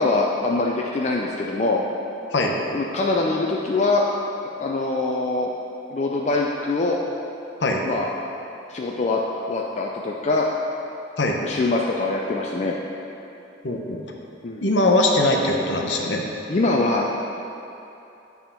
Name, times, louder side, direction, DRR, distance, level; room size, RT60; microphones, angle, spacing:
voice 1, 0.0-1.8 2.7-4.1 4.6-5.5 5.9-7.0 7.8-8.1 8.7-9.2 9.5-10.5 11.4-12.8 14.4-14.7 16.5-17.1, left 3 dB, 35° left, -2 dB, 0.4 m, -23 dB
voice 2, 13.6-14.0 14.6-16.2, left 2 dB, 65° left, 0 dB, 0.8 m, -21 dB
9.0 x 3.6 x 5.8 m, 2.8 s
head